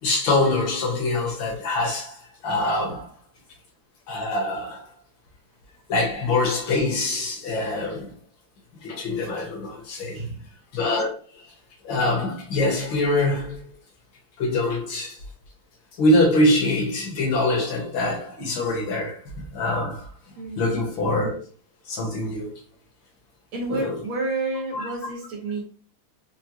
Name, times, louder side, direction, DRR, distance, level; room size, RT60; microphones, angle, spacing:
voice 1, 0.0-3.1 4.1-4.9 5.9-8.1 8.8-10.2 10.7-11.4 11.8-13.7 14.4-15.2 16.0-19.2 19.5-20.1 20.6-21.4 21.9-22.5 23.7-24.0 24.7-24.9, left 2 dB, 65° left, 1.8 m, -24 dB
voice 2, 10.0-10.4 20.4-20.8 23.5-25.6, right 2 dB, 80° right, 2.0 m, -30 dB
4.9 x 2.2 x 2.9 m
omnidirectional pair, 2.3 m